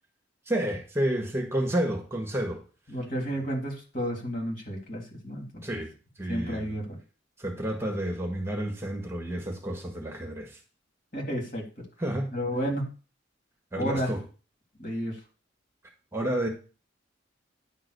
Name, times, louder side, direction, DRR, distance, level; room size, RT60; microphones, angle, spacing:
voice 1, 0.5-2.6 5.6-5.9 6.2-6.8 7.4-10.6 12.0-12.3 13.7-14.2 16.1-16.5, right 1 dB, 15° right, 1 dB, 1.4 m, -30 dB
voice 2, 2.9-5.4 6.3-7.0 11.1-11.6 12.3-12.9 13.7-14.1 14.8-15.1, equal, 45° left, 1 dB, 3.0 m, -31 dB
10.0 x 3.9 x 6.6 m, 0.35 s
head